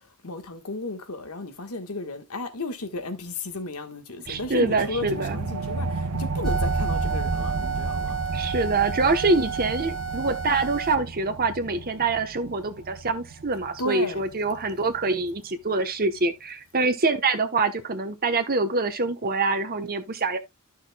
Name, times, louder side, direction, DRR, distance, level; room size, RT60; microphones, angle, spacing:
voice 1, 0.2-8.2 13.8-14.2, left 2 dB, 85° left, 1.5 m, -34 dB
voice 2, 4.3-5.4 8.3-20.4, right 3 dB, 45° right, 1.0 m, -25 dB
sound 1, 4.3-15.3, right 3 dB, 80° right, 0.7 m, -34 dB
sound 2, 6.4-11.0, right 4 dB, ahead, 1.7 m, -29 dB
12.5 x 6.4 x 2.3 m
head